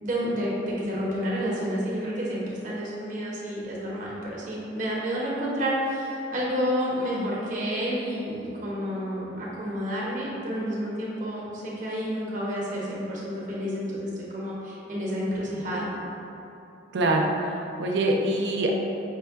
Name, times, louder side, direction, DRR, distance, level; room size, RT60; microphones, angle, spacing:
voice 1, 0.0-15.9, equal, 45° right, -6 dB, 0.9 m, -30 dB
voice 2, 16.9-18.7, right 1 dB, 65° right, 0 dB, 0.4 m, -24 dB
5.4 x 2.2 x 3.5 m, 2.9 s
head